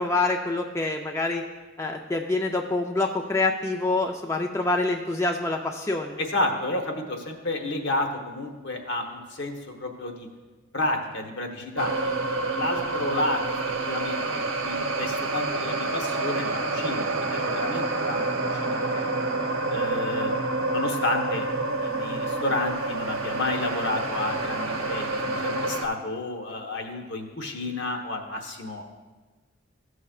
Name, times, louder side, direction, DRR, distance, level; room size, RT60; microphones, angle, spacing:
voice 1, 0.0-1.4 1.8-6.2, left 2 dB, 15° left, 1 dB, 0.3 m, -26 dB
voice 2, 6.2-10.3 10.7-13.6 13.8-18.2 18.5-19.1 19.7-20.3 20.7-21.5 21.8-28.8, left 2 dB, 60° left, 3 dB, 1.0 m, -31 dB
sound 1, 11.8-25.9, right 2 dB, 85° right, 0.7 m, -28 dB
14.5 x 6.4 x 2.4 m, 1.3 s
head